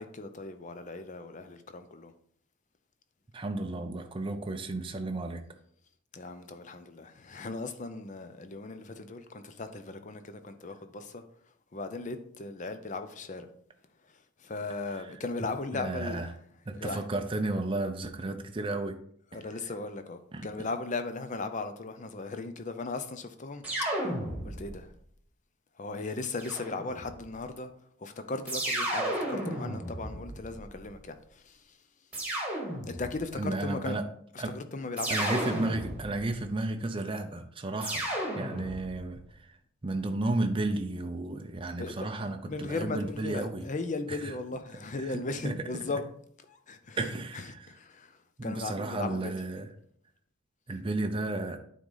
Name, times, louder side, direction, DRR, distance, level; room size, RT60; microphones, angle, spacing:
voice 1, 0.0-2.1 6.1-13.5 14.0-16.3 16.7-17.0 19.3-23.9 24.4-25.0 25.7-27.7 28.0-31.9 32.9-34.0 34.3-35.3 41.8-46.0 46.5-49.4, left 3 dB, 35° left, 0.6 m, -38 dB
voice 2, 3.3-5.4 15.7-16.3 16.7-19.0 20.3-20.5 33.4-34.1 34.4-34.5 35.1-38.1 38.3-39.5 39.8-43.6 44.2-44.3 45.1-45.5 45.9-46.0 47.0-47.6 48.4-49.7 50.7-51.6, right 2 dB, 25° right, 0.5 m, -33 dB
sound 1, 23.6-24.8 26.4-27.2 28.5-30.8 32.1-33.2 35.0-36.3 37.8-39.0, right 1 dB, 5° right, 1.5 m, -33 dB
9.2 x 3.8 x 3.9 m
head